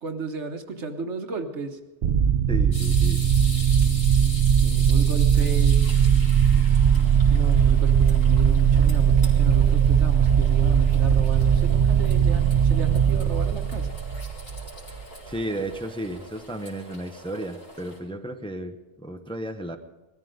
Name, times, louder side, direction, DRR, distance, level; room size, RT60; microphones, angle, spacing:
voice 1, 0.0-1.8 4.6-5.9 7.3-13.9, right 3 dB, 75° right, 6 dB, 1.6 m, -34 dB
sound 1, 2.0-15.0, right 8 dB, 55° right, 0.7 m, -19 dB
voice 2, 2.5-3.2 15.3-19.8, right 1 dB, 5° left, 6 dB, 0.7 m, -33 dB
sound 2, 2.7-18.0, left 1 dB, 55° left, 3.3 m, -41 dB
20.5 x 13.5 x 5.2 m, 1.0 s
omnidirectional pair, 1.2 m